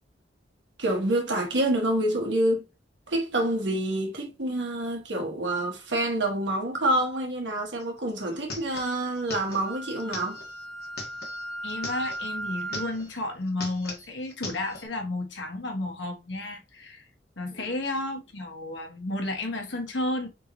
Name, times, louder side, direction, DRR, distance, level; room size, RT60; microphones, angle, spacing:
voice 1, 0.8-2.6 3.1-10.4 17.6-17.7, right 1 dB, 85° right, 1.3 m, -27 dB
sound 1, 7.8-7.9 8.1-12.3 12.6-13.2 13.5-14.9, left 3 dB, 60° left, 1.4 m, -40 dB
Wind instrument woodwind instrument, 9.6-13.0, right 1 dB, ahead, 1.0 m, -36 dB
voice 2, 11.6-17.0 17.4-20.3, left 2 dB, 85° left, 1.2 m, -32 dB
3.9 x 3.7 x 3.0 m
head